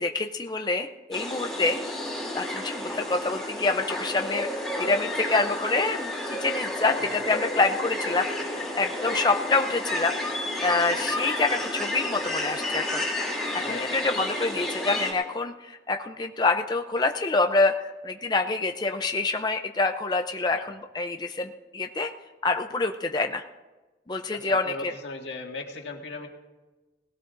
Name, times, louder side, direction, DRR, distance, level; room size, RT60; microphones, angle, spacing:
voice 1, 0.0-1.8 2.3-4.5 4.8-8.3 8.7-10.2 10.6-13.0 13.5-22.1 22.4-23.4 24.1-24.9, left 3 dB, 25° left, 5 dB, 0.5 m, -26 dB
sound 1, 1.1-15.1, left 1 dB, ahead, 2.8 m, -31 dB
voice 2, 7.0-7.3 13.6-13.9 20.5-20.7 24.3-26.3, left 3 dB, 90° left, 1 dB, 1.9 m, -38 dB
19.0 x 17.0 x 2.6 m, 1.2 s
head